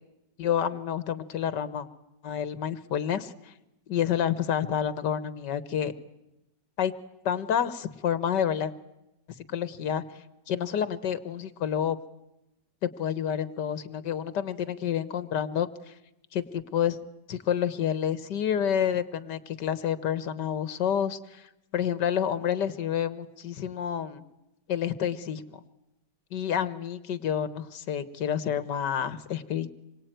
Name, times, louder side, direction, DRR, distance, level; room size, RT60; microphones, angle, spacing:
voice 1, 0.4-1.9 2.2-3.5 3.9-5.9 6.8-6.9 7.3-8.7 9.5-10.0 10.5-12.0 12.8-15.7 16.3-17.0 17.3-24.2 24.7-25.6 26.3-29.7, left 9 dB, 75° left, 14 dB, 2.0 m, -29 dB
27.0 x 23.0 x 9.2 m, 0.89 s
omnidirectional pair, 1.9 m